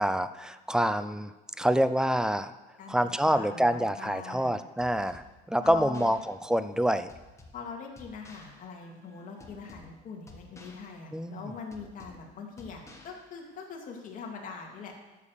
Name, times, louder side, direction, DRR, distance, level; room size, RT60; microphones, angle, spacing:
voice 1, 0.0-1.3 1.6-2.5 2.9-7.1 11.1-11.5, equal, 5° right, 12 dB, 0.4 m, -27 dB
voice 2, 3.2-4.5 5.6-6.2 7.5-14.9, left 5 dB, 45° left, 0 dB, 2.5 m, -42 dB
sound 1, 4.8-13.8, left 2 dB, 15° left, 1.4 m, -54 dB
12.5 x 6.8 x 6.6 m, 1.1 s
cardioid pair, 130°, 19 cm